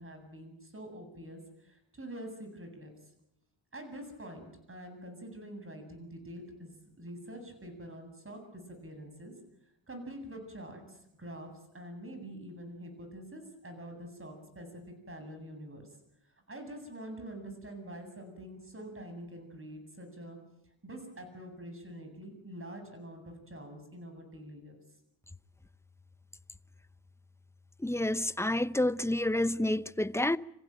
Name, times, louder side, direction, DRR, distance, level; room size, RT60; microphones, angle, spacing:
voice 1, 0.0-3.1 3.7-6.7 7.0-9.3 9.9-15.9 16.2-20.4 20.8-25.0, right 1 dB, 30° right, 7.9 m, -46 dB
voice 2, 27.8-30.4, left 1 dB, 5° left, 0.8 m, -29 dB
26.5 x 15.5 x 9.2 m
cardioid pair, 65°, 45 cm